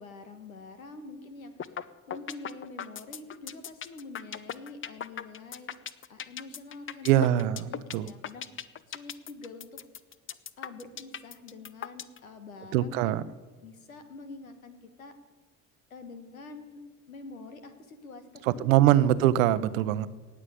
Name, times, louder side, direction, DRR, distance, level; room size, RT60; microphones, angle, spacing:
voice 1, 0.0-1.7 2.1-5.7 6.1-9.7 10.6-13.2 13.6-15.1 15.9-16.8 17.1-19.3, left 3 dB, 85° left, 9 dB, 1.5 m, -46 dB
sound 1, 1.6-1.8 2.1-12.2, left 8 dB, 30° left, 0.8 m, -37 dB
voice 2, 7.0-8.1 12.7-13.2 18.6-20.1, right 12 dB, 70° right, 16 dB, 0.8 m, -23 dB
18.5 x 7.4 x 9.8 m, 1.4 s
figure-of-eight pair, 55°, 41 cm